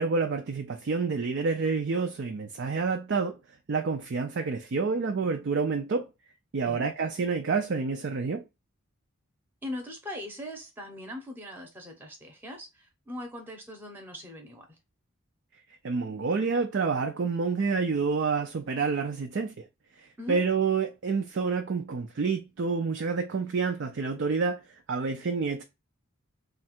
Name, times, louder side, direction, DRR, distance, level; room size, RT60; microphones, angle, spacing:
voice 1, 0.0-3.4 3.7-6.1 6.5-8.4 15.8-19.5 20.0-24.6 24.9-25.6, right 4 dB, 55° right, 0.4 m, -28 dB
voice 2, 9.6-14.8 20.2-20.4, left 1 dB, 10° right, 0.8 m, -40 dB
3.3 x 2.4 x 4.3 m
head